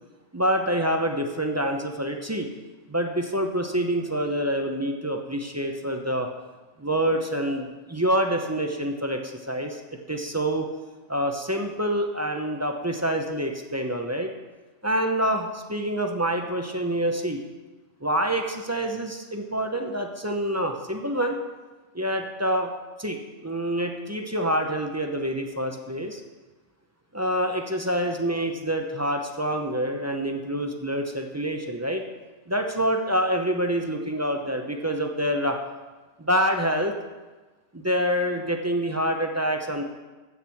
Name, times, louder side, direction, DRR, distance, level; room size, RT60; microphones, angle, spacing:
voice 1, 0.3-2.5 2.9-6.3 6.8-9.8 10.1-10.7 11.1-14.3 14.8-17.4 18.0-21.4 21.9-22.7 23.0-26.2 27.1-32.0 32.5-35.6 36.2-37.0 37.7-39.8, equal, 15° right, 3 dB, 0.6 m, -26 dB
8.0 x 7.3 x 5.8 m, 1.2 s
omnidirectional pair, 1.2 m